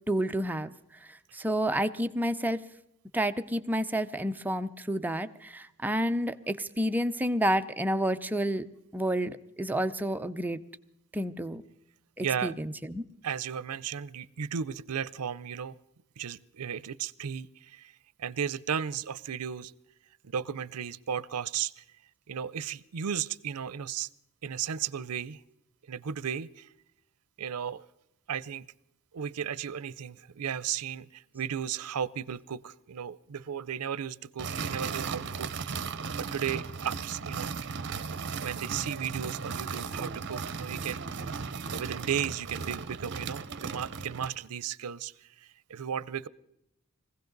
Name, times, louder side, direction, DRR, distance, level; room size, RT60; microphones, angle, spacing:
voice 1, 0.1-0.7 1.0-2.6 3.1-8.7 8.9-10.6 11.1-11.6 12.2-13.0, right 1 dB, 10° right, 0.5 m, -30 dB
voice 2, 12.2-12.5 13.2-15.7 16.2-17.9 18.2-19.7 20.2-21.8 22.3-24.1 24.4-25.4 25.9-26.7 27.4-27.8 28.3-28.7 29.1-35.9 36.2-37.5 38.4-41.0 41.7-46.3, right 8 dB, 80° right, 0.5 m, -35 dB
sound 1, 34.4-44.4, right 5 dB, 55° right, 0.8 m, -36 dB
22.0 x 16.0 x 4.0 m
head